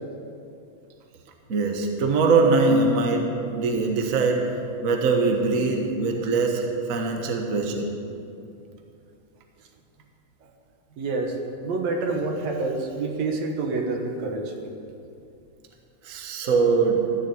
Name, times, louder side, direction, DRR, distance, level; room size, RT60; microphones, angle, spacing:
voice 1, 1.5-6.6 6.9-7.9 16.0-17.1, right 3 dB, 50° right, 2 dB, 1.0 m, -22 dB
voice 2, 11.0-14.5, right 3 dB, 65° right, 3 dB, 2.4 m, -27 dB
14.5 x 7.5 x 8.3 m, 2.6 s
omnidirectional pair, 3.4 m